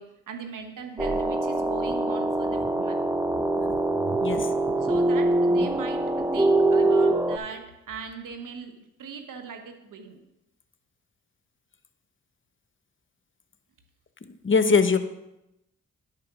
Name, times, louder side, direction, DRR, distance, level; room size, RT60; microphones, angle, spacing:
voice 1, 0.0-3.0 4.3-4.4 4.8-8.7 9.0-10.2, right 6 dB, 80° right, 5 dB, 1.3 m, -40 dB
sound 1, 1.0-7.4, right 2 dB, 10° right, 0.7 m, -23 dB
voice 2, 14.4-15.0, left 5 dB, 40° left, 10 dB, 0.9 m, -21 dB
10.0 x 4.8 x 6.0 m, 0.88 s
cardioid pair, 50°, 32 cm